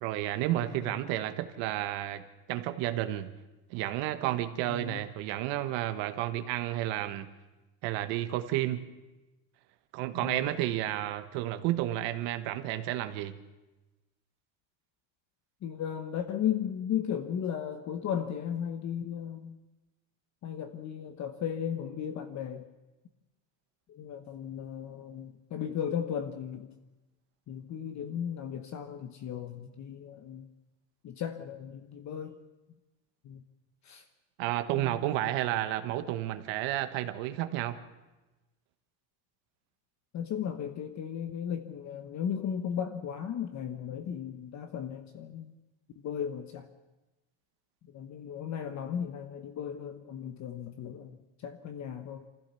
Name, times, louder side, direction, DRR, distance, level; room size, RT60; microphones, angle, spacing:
voice 1, 0.0-2.2 2.5-3.3 3.7-7.3 7.8-8.8 9.9-13.4 34.4-37.8, right 14 dB, 70° right, 9 dB, 1.3 m, -31 dB
voice 2, 0.6-1.0 4.7-5.0 10.2-10.5 15.6-19.6 20.4-22.7 23.9-26.7 27.5-30.5 31.0-32.3 33.2-33.4 33.8-34.0 34.8-35.0 40.1-45.5 46.0-46.7 47.9-51.2 51.4-52.3, left 8 dB, 40° left, 7 dB, 1.0 m, -36 dB
24.5 x 15.5 x 6.9 m, 1.1 s
cardioid pair, 145°, 45 cm